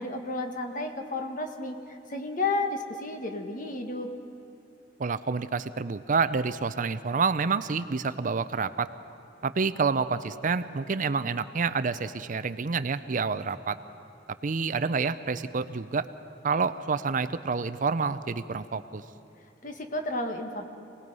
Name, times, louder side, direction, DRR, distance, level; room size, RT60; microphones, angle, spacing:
voice 1, 0.0-4.1 19.6-20.6, left 2 dB, 50° left, 4 dB, 1.5 m, -32 dB
voice 2, 5.0-8.9 9.4-13.8 14.4-16.1 16.4-19.0, right 5 dB, 50° right, 13 dB, 0.5 m, -28 dB
26.5 x 19.0 x 5.4 m, 2.6 s
head